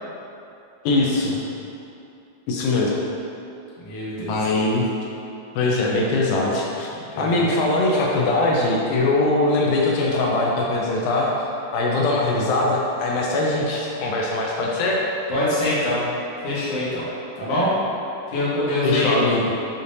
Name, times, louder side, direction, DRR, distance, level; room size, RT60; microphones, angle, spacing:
voice 1, 0.9-1.4 2.5-2.9 4.3-4.9 5.6-6.9 7.2-11.3 11.7-15.0 18.8-19.4, left 2 dB, 85° left, -2 dB, 2.0 m, -21 dB
voice 2, 3.8-4.3 7.1-7.5 15.3-16.0 16.4-17.0 17.4-17.7 18.3-19.2, left 1 dB, 60° left, -9 dB, 1.9 m, -24 dB
6.7 x 2.8 x 2.6 m, 2.8 s
omnidirectional pair, 3.4 m